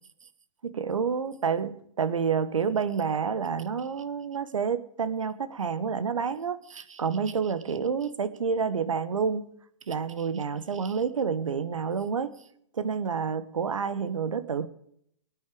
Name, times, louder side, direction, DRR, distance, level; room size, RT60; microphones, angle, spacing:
voice 1, 0.6-9.5 9.9-12.3 12.7-14.7, right 6 dB, 80° right, 13 dB, 1.4 m, -29 dB
23.0 x 9.3 x 5.1 m, 0.69 s
hypercardioid pair, 135°, 16 cm